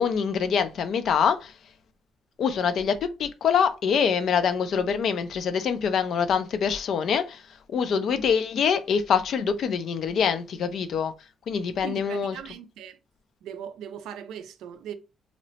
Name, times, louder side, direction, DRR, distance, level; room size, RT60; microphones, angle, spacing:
voice 1, 0.0-1.5 2.4-7.4 7.7-11.1 11.5-12.4, left 7 dB, 65° left, 0.3 m, -25 dB
voice 2, 11.8-13.0 13.4-14.9, right 9 dB, 85° right, 0.3 m, -39 dB
2.8 x 2.0 x 2.7 m
cardioid pair, 90°, 0 cm